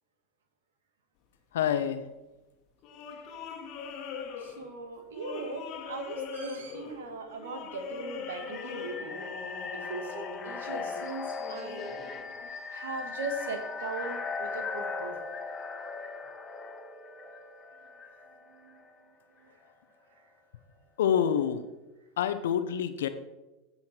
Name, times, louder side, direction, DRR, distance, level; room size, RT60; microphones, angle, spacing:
voice 1, 1.5-2.1 21.0-21.7 22.2-23.1, left 9 dB, 80° left, 11 dB, 0.9 m, -27 dB
sound 1, 2.8-12.5, left 6 dB, 50° left, 1.6 m, -41 dB
voice 2, 4.4-9.2 9.7-11.9 12.7-15.2 18.6-18.8, right 3 dB, 80° right, 7 dB, 1.7 m, -39 dB
sound 2, 8.1-18.9, left 4 dB, 30° left, 1.6 m, -39 dB
16.0 x 5.7 x 4.5 m, 1.1 s
hypercardioid pair, 90°, 0 cm